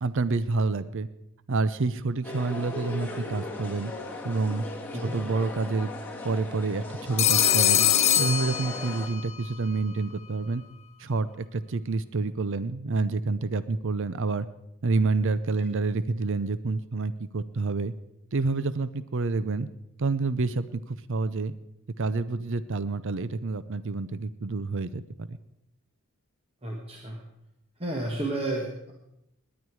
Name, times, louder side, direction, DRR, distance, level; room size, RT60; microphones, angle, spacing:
voice 1, 0.0-1.1 1.5-3.9 4.2-4.6 4.9-5.9 6.2-7.9 8.2-10.6 11.0-14.5 14.8-17.9 18.3-19.7 20.0-21.5 22.0-25.4, right 3 dB, 60° right, 15 dB, 0.6 m, -28 dB
sound 1, 2.2-9.1, left 2 dB, 10° left, 1.8 m, -37 dB
Telephone, 7.2-9.3, left 10 dB, 30° left, 0.6 m, -23 dB
voice 2, 26.6-27.2 27.8-28.9, right 2 dB, 25° right, 0 dB, 1.6 m, -31 dB
19.0 x 10.0 x 4.7 m, 0.83 s
head